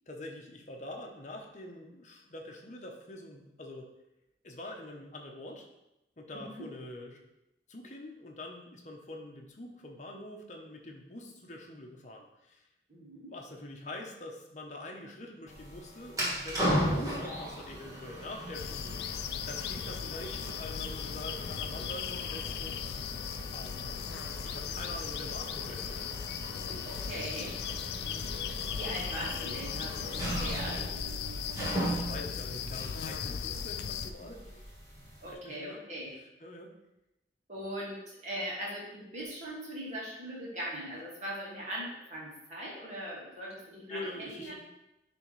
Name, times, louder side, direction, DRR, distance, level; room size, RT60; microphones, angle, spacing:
voice 1, 0.1-3.9 4.4-5.7 6.2-7.2 7.7-12.6 13.3-19.0 19.5-22.8 23.5-24.0 24.4-26.1 26.6-26.9 27.9-28.5 31.6-34.7 35.2-35.8 36.1-36.7 43.9-44.5, left 1 dB, 40° left, 1 dB, 0.9 m, -45 dB
voice 2, 6.3-6.7 12.9-13.3 26.5-27.5 28.8-30.8 35.2-36.1 37.5-44.5, equal, 40° right, -5 dB, 2.0 m, -40 dB
sound 1, 15.5-35.3, equal, 20° right, 1.6 m, -38 dB
sound 2, 18.5-34.1, left 7 dB, 65° left, 0.3 m, -37 dB
9.6 x 3.5 x 3.2 m, 0.89 s
head